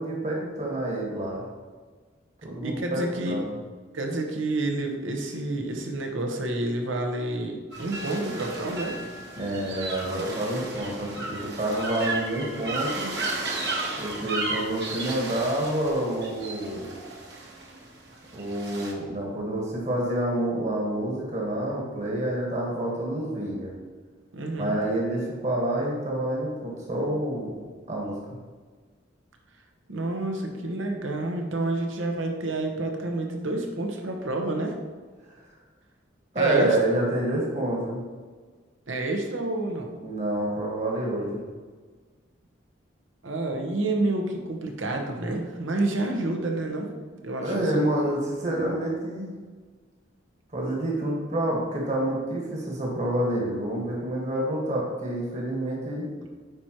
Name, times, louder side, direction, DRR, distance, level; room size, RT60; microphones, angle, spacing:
voice 1, 0.0-1.4 2.4-3.5 9.4-13.1 14.0-16.9 18.3-23.7 24.6-27.6 27.9-28.2 36.3-38.0 40.0-41.4 47.4-49.3 50.5-56.1, right 1 dB, 35° right, -3 dB, 1.4 m, -28 dB
voice 2, 2.6-3.4 3.9-9.0 24.3-24.8 29.9-34.7 36.4-36.8 38.9-39.9 43.2-46.9 47.2-47.9, right 2 dB, 85° right, 2 dB, 1.0 m, -29 dB
sound 1, 7.7-18.9, right 2 dB, 55° right, 1.2 m, -34 dB
9.4 x 4.5 x 2.9 m, 1.5 s
head